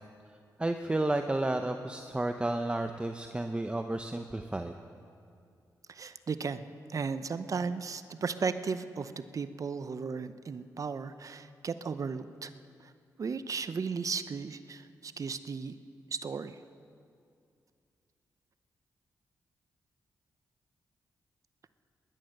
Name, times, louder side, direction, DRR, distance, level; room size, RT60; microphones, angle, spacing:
voice 1, 0.6-4.7, right 2 dB, 15° right, 6 dB, 0.7 m, -31 dB
voice 2, 5.9-12.5 12.8-12.9 13.2-15.7 16.1-16.6, right 5 dB, 50° right, 12 dB, 0.6 m, -35 dB
19.5 x 11.0 x 6.5 m, 2.4 s
cardioid pair, 65°, 7 cm